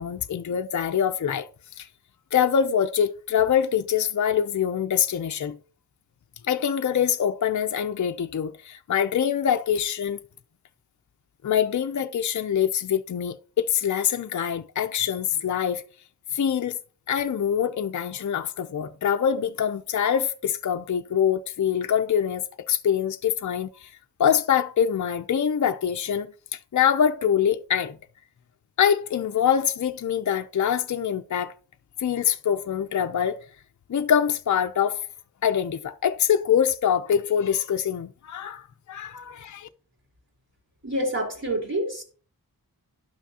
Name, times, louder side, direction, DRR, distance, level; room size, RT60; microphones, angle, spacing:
voice 1, 0.0-1.5 1.7-1.9 2.3-5.6 6.5-10.2 11.4-15.8 16.3-16.8 17.1-23.9 24.2-28.0 28.8-31.5 32.0-33.4 33.9-35.1 35.4-39.7, left 8 dB, 50° left, 0.5 m, -24 dB
voice 2, 40.8-42.0, right 1 dB, 40° right, 3.2 m, -27 dB
11.5 x 5.9 x 2.8 m
wide cardioid pair, 85°, 37 cm